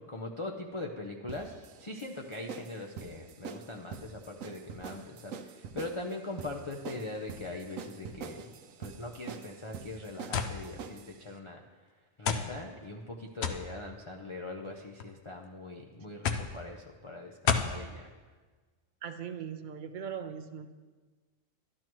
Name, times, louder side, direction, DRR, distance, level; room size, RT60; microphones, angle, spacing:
voice 1, 0.1-1.5 1.8-11.6 12.2-18.1, left 2 dB, 35° left, -1 dB, 0.5 m, -41 dB
sound 1, 1.3-11.2, right 6 dB, 85° right, 1.0 m, -44 dB
sound 2, 10.3-10.6 11.5-11.6 12.3-12.5 13.4-13.7 14.7-15.1 16.2-16.5 17.5-17.8, left 6 dB, 60° left, 0.8 m, -29 dB
voice 2, 19.0-20.7, right 8 dB, 55° right, 7 dB, 0.6 m, -39 dB
12.0 x 11.0 x 3.1 m, 1.3 s
omnidirectional pair, 1.3 m